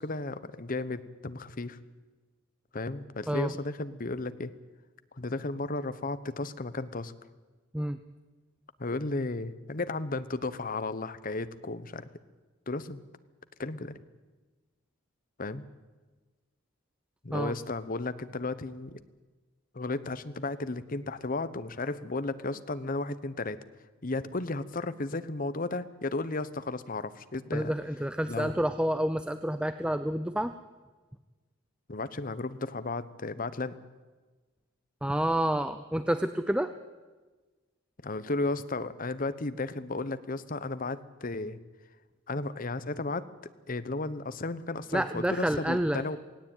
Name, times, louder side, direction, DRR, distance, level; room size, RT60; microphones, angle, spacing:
voice 1, 0.0-1.8 2.7-4.5 5.1-7.1 8.8-12.1 12.7-13.0 13.6-13.9 15.4-15.6 17.2-19.0 19.7-23.6 24.0-27.7 28.3-28.5 31.9-33.8 38.0-41.6 42.3-43.2 43.7-46.2, left 2 dB, 45° left, 13 dB, 1.0 m, -34 dB
voice 2, 27.5-30.5 35.0-36.7 44.9-46.0, right 1 dB, 5° right, 10 dB, 0.6 m, -29 dB
18.0 x 18.0 x 9.1 m, 1.3 s
head